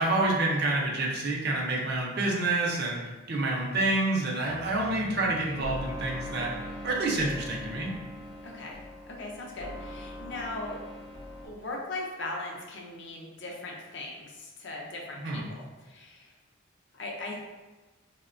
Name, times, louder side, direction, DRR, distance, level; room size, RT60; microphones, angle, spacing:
voice 1, 0.0-3.0 3.3-6.5 6.8-7.9 15.2-15.4, right 2 dB, 50° right, -1 dB, 0.4 m, -28 dB
sound 1, 4.5-11.5, left 1 dB, 5° left, 0.5 m, -41 dB
voice 2, 8.4-8.8 9.1-10.8 11.4-16.3 16.9-17.4, left 2 dB, 60° left, -1 dB, 0.5 m, -39 dB
2.8 x 2.1 x 2.5 m, 1.2 s
head